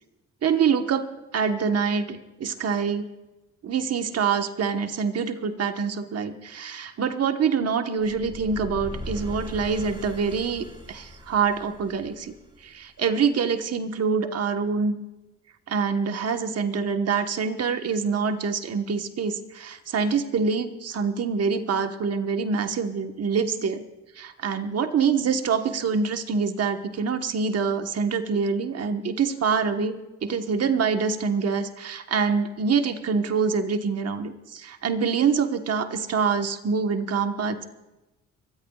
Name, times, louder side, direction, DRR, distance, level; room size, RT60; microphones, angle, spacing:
voice 1, 0.4-3.1 3.6-12.3 12.6-14.9 15.7-23.8 24.2-37.6, right 5 dB, 55° right, 6 dB, 1.4 m, -25 dB
sound 1, 8.0-13.0, left 1 dB, 15° right, 4.1 m, -39 dB
24.0 x 19.0 x 2.4 m, 1.0 s
cardioid pair, 90°, 30 cm